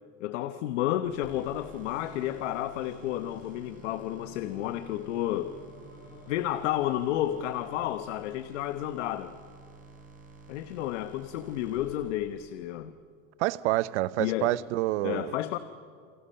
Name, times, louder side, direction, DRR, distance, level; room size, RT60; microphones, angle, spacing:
voice 1, 0.2-5.6 6.3-9.3 10.5-12.9 14.2-14.6 15.0-15.6, left 13 dB, 90° left, 1.1 m, -31 dB
sound 1, 1.0-12.7, right 3 dB, 20° right, 4.5 m, -51 dB
sound 2, 1.4-8.1, left 2 dB, 30° left, 5.5 m, -54 dB
voice 2, 13.4-15.3, right 17 dB, 80° right, 0.8 m, -28 dB
30.0 x 28.5 x 5.7 m
supercardioid pair, 170°, 35 cm